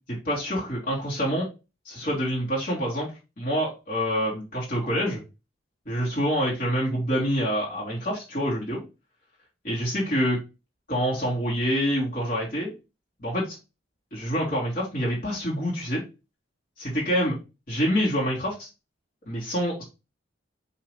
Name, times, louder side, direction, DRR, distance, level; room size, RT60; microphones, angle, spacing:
voice 1, 0.1-1.5 1.9-3.1 3.4-5.2 5.9-8.8 9.7-10.4 10.9-12.7 13.2-13.6 14.1-16.0 16.8-17.4 17.7-18.7 19.3-19.8, equal, 45° left, -5 dB, 2.1 m, -26 dB
5.3 x 2.9 x 3.2 m, 0.28 s
head